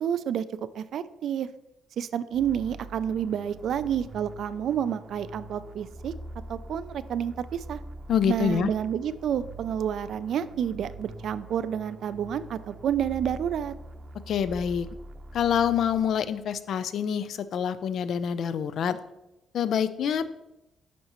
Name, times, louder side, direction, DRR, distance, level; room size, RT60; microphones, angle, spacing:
voice 1, 0.0-0.4 0.7-1.5 2.0-6.1 6.5-7.8 8.3-13.7, right 9 dB, 70° right, 14 dB, 0.3 m, -29 dB
sound 1, 2.3-16.5, right 2 dB, 40° right, 0.7 m, -44 dB
voice 2, 8.1-8.7 14.3-14.9 15.3-19.0 19.5-20.3, left 8 dB, 65° left, 13 dB, 0.4 m, -26 dB
8.4 x 5.4 x 3.0 m, 0.91 s
cardioid pair, 90°, 0 cm